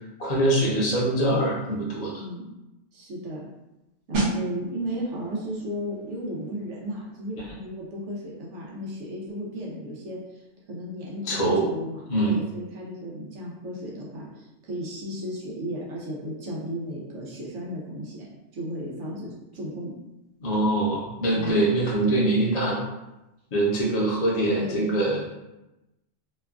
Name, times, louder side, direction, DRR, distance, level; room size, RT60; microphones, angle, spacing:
voice 1, 0.2-2.2 11.2-11.7 12.1-12.4 20.4-22.8 23.5-25.3, right 1 dB, 40° left, -4 dB, 0.7 m, -23 dB
voice 2, 2.2-2.5 2.9-3.4 4.1-19.9 21.3-21.6 24.4-25.0, equal, 90° right, -4 dB, 1.0 m, -34 dB
sound 1, 4.1-14.6 14.9-15.2, right 2 dB, 55° right, 0.8 m, -37 dB
2.9 x 2.2 x 2.4 m, 0.96 s
omnidirectional pair, 1.2 m